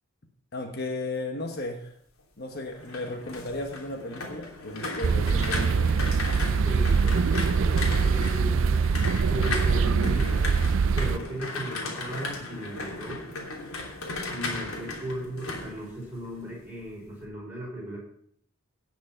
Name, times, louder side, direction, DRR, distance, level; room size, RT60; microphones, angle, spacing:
voice 1, 0.5-2.0 2.4-5.9, left 2 dB, 50° left, 3 dB, 1.4 m, -35 dB
sound 1, 2.6-16.6 16.9-17.3, left 2 dB, 80° left, 3.0 m, -36 dB
sound 2, 5.0-11.2, right 5 dB, 65° right, 0.4 m, -23 dB
voice 2, 6.5-8.8 9.3-10.3 11.0-13.2 14.3-18.0, right 1 dB, 10° right, -4 dB, 5.4 m, -36 dB
17.5 x 6.3 x 5.8 m, 0.65 s
head